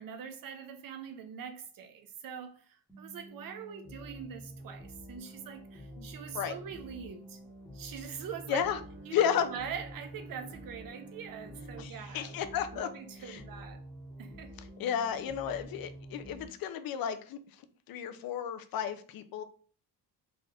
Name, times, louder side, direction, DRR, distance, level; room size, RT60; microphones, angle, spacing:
voice 1, 0.0-7.4 7.7-8.6 9.0-12.4 12.7-13.8 14.2-14.6, right 7 dB, 55° right, 0.7 m, -43 dB
sound 1, 2.9-16.5, right 1 dB, 5° left, 1.1 m, -48 dB
Bowed string instrument, 8.0-12.6, right 4 dB, 75° right, 1.7 m, -53 dB
voice 2, 8.5-8.8 9.1-9.5 11.8-12.9 13.2-13.4 14.8-17.4 17.9-19.4, left 8 dB, 60° left, 0.5 m, -32 dB
3.8 x 2.5 x 3.3 m
cardioid pair, 155°, 41 cm